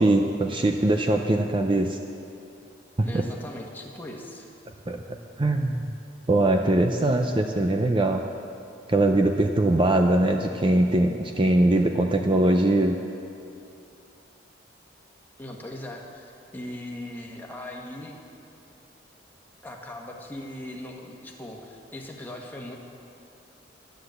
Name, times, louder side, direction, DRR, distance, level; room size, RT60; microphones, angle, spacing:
voice 1, 0.0-2.0 3.0-3.2 4.9-5.9 6.3-8.2 8.9-13.0, right 1 dB, 30° right, 4 dB, 0.5 m, -22 dB
voice 2, 3.0-4.5 15.4-18.2 19.6-22.8, left 1 dB, 10° left, -1 dB, 1.5 m, -39 dB
11.5 x 10.0 x 7.8 m, 2.6 s
head